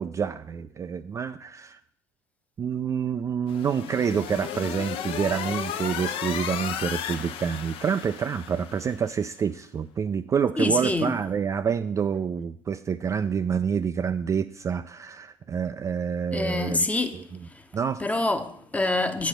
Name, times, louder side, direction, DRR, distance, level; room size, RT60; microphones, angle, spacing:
voice 1, 0.0-1.8 2.6-16.9 17.1-17.2 17.7-18.0, right 7 dB, 30° right, 0.3 m, -27 dB
sound 1, 3.5-9.0, left 9 dB, 55° left, 0.6 m, -34 dB
voice 2, 10.6-11.1 16.3-17.2 18.0-19.3, left 2 dB, 10° left, 0.8 m, -26 dB
8.0 x 4.2 x 6.7 m
hypercardioid pair, 70°, 11 cm